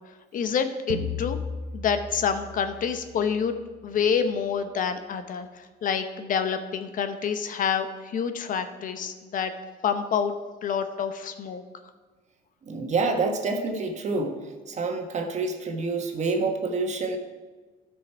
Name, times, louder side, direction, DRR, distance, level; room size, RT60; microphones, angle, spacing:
voice 1, 0.3-1.4 1.7-3.5 3.8-9.5 9.8-10.3 10.6-11.6, left 7 dB, 55° left, 8 dB, 0.9 m, -27 dB
sound 1, 0.9-3.6, left 3 dB, 85° right, 1.0 m, -35 dB
voice 2, 12.7-14.4 14.7-17.2, right 3 dB, 45° right, 4 dB, 1.4 m, -27 dB
13.0 x 6.3 x 4.7 m, 1.3 s
cardioid pair, 110°, 17 cm